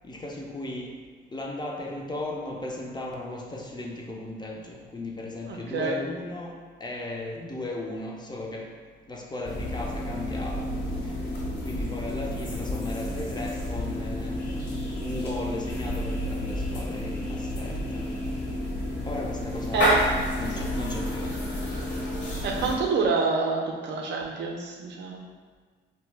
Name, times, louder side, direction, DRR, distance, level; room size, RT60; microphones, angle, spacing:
voice 1, 0.0-0.9 1.3-8.7 9.1-10.7 11.6-14.4 15.0-18.0 19.0-21.4, left 2 dB, 20° left, 0 dB, 0.4 m, -36 dB
voice 2, 5.5-6.0 19.7-20.0 22.4-25.2, right 4 dB, 65° right, 1 dB, 0.5 m, -27 dB
sound 1, 9.4-22.7, left 1 dB, 60° left, 0.7 m, -30 dB
2.7 x 2.1 x 3.1 m, 1.5 s
cardioid pair, 90°, 20 cm